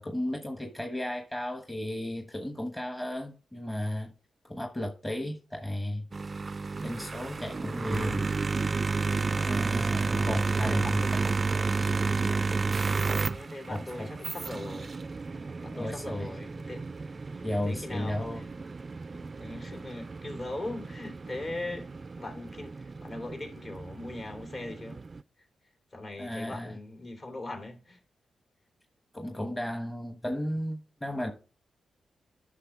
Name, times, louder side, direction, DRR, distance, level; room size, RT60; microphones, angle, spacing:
voice 1, 0.0-4.1 4.5-6.1 6.8-8.2 9.3-11.0 13.7-14.1 15.7-16.3 17.4-18.4 26.2-26.7 29.1-31.3, left 1 dB, 15° left, 1.1 m, -34 dB
sound 1, 6.1-25.2, right 4 dB, 40° right, 0.3 m, -32 dB
voice 2, 9.5-11.3 13.2-14.9 15.3-16.8 17.3-18.5 19.1-25.0 25.4-25.5 25.9-28.0, left 2 dB, 50° left, 2.8 m, -41 dB
10.0 x 5.8 x 3.5 m
cardioid pair, 70°, 0 cm